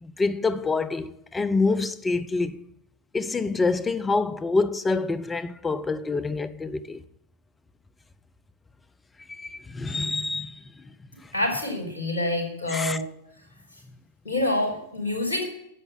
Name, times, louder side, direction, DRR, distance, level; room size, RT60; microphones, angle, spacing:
voice 1, 0.0-2.6 3.1-7.0 9.3-10.5 12.7-13.0, left 3 dB, 15° left, 0.8 m, -26 dB
voice 2, 11.3-13.0 14.2-15.4, left 1 dB, 75° left, 4.1 m, -26 dB
11.0 x 7.8 x 9.1 m
figure-of-eight pair, 90°, 0 cm